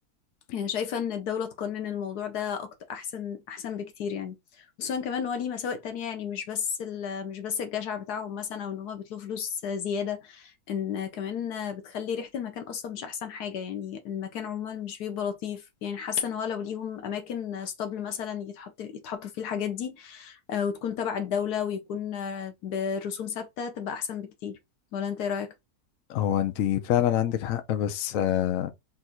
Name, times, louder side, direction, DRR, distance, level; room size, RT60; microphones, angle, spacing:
voice 1, 0.5-24.6 24.9-25.5, left 7 dB, 90° left, 1.4 m, -33 dB
voice 2, 26.1-28.7, left 11 dB, 70° left, 1.0 m, -26 dB
4.0 x 2.6 x 4.3 m
omnidirectional pair, 1.6 m